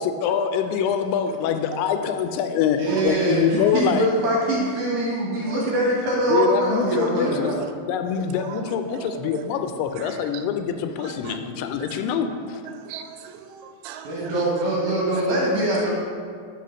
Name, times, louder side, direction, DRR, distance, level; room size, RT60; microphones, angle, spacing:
voice 1, 0.0-4.1 6.3-7.5 7.9-12.6, left 7 dB, 85° left, 7 dB, 2.5 m, -24 dB
voice 2, 1.7-2.1 2.9-3.0 5.5-5.7 7.3-7.7 8.1-9.4 10.0-10.4 11.0-11.4 11.8-12.0 12.3-12.4 12.7-14.3, right 8 dB, 80° right, 7 dB, 2.4 m, -39 dB
voice 3, 2.8-7.5 14.0-15.9, right 1 dB, 65° right, -4 dB, 2.1 m, -23 dB
5.7 x 5.4 x 6.3 m, 2.1 s
omnidirectional pair, 4.7 m